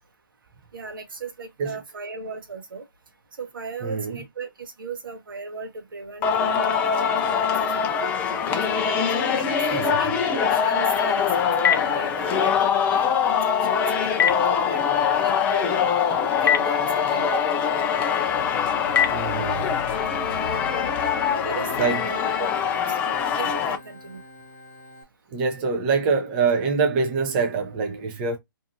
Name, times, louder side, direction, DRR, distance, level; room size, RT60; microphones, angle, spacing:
voice 1, 0.7-2.8 3.4-8.6 9.2-15.8 16.4-17.5 21.3-24.2, right 4 dB, 70° right, 0.9 m, -37 dB
voice 2, 3.8-4.1 9.7-10.0 19.1-19.7 21.8-22.0 25.3-28.4, right 5 dB, 25° right, 0.6 m, -24 dB
Singing, 6.2-23.8, left 7 dB, 10° left, 0.3 m, -23 dB
Telephone, 10.9-19.8, left 8 dB, 70° left, 0.5 m, -30 dB
Organ, 17.7-25.0, left 3 dB, 35° left, 1.1 m, -41 dB
2.7 x 2.4 x 2.7 m
hypercardioid pair, 145°, 11 cm